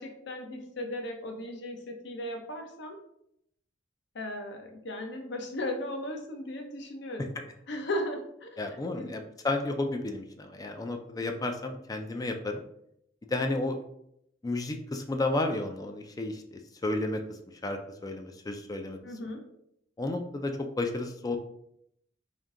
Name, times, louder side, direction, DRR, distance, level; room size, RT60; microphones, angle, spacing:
voice 1, 0.0-3.0 4.1-7.3 7.7-8.6 9.0-9.1 19.0-19.4, left 1 dB, 65° left, 3 dB, 0.7 m, -36 dB
voice 2, 8.6-12.6 13.3-13.8 14.4-17.2 17.6-19.0 20.0-21.4, left 2 dB, 20° left, 5 dB, 0.3 m, -32 dB
3.6 x 2.7 x 3.7 m, 0.74 s
head